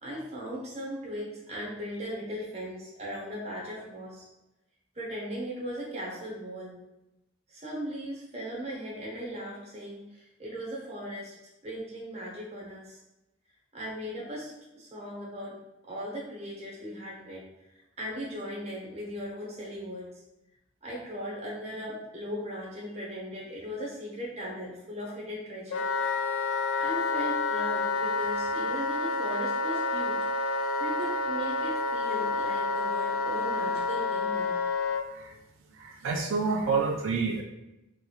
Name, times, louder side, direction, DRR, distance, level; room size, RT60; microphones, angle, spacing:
voice 1, 0.0-4.3 4.9-6.8 7.5-11.4 11.6-13.0 13.7-15.6 15.8-17.4 18.0-20.2 20.8-25.8 26.8-30.2 30.8-34.6, equal, 30° right, -5 dB, 0.9 m, -38 dB
Wind instrument woodwind instrument, 25.7-35.0, left 3 dB, 85° left, 0.3 m, -29 dB
voice 2, 35.8-37.4, right 4 dB, 80° right, 2 dB, 0.4 m, -28 dB
3.5 x 3.0 x 2.4 m, 0.95 s
head